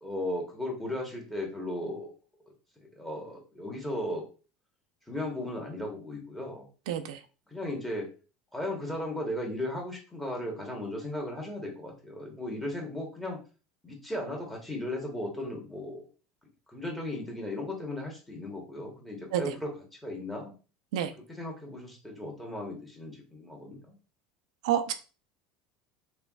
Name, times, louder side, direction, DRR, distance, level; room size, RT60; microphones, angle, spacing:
voice 1, 0.0-2.1 3.0-4.2 5.1-6.7 7.5-8.1 8.5-13.4 13.8-16.1 16.7-19.7 20.0-20.5 21.3-24.0, left 1 dB, 5° left, 1.1 m, -36 dB
voice 2, 6.9-7.2 19.3-19.4 20.9-21.1 24.6-24.9, right 10 dB, 90° right, 0.4 m, -28 dB
3.4 x 3.1 x 2.3 m
supercardioid pair, 125°, 3 cm